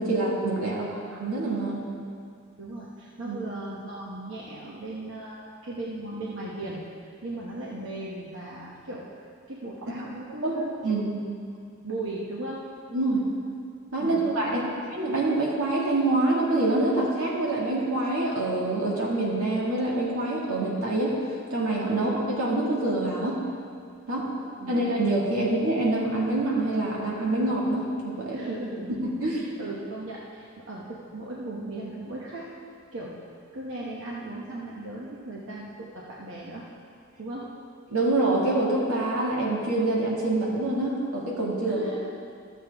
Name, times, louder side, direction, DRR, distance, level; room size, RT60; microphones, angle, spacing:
voice 1, 0.0-1.8 3.2-3.4 10.4-10.5 10.8-11.2 12.9-13.2 13.9-21.1 21.5-23.4 24.1-24.3 24.7-28.4 29.0-29.5 37.9-41.8, right 2 dB, 85° right, -4 dB, 1.9 m, -26 dB
voice 2, 2.6-9.0 9.5-10.8 11.8-12.6 14.0-14.7 24.2-24.8 28.3-32.5 32.9-33.2 33.5-36.6 37.2-37.5 41.6-42.1, right 2 dB, 60° right, -5 dB, 1.0 m, -37 dB
13.0 x 7.4 x 3.5 m, 2.3 s
head